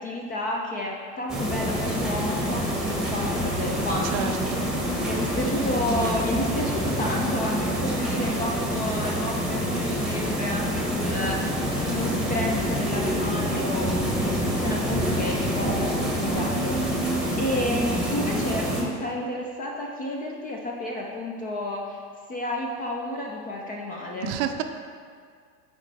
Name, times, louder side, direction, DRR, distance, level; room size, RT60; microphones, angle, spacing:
voice 1, 0.0-4.5 5.0-22.0 22.3-24.3, left 1 dB, 20° left, -1 dB, 0.4 m, -31 dB
sound 1, 1.3-18.8, equal, ahead, 1.0 m, -26 dB
voice 2, 4.1-4.7 24.2-24.6, right 9 dB, 50° right, 7 dB, 0.6 m, -29 dB
8.9 x 4.0 x 3.3 m, 2.1 s
hypercardioid pair, 95°, 49 cm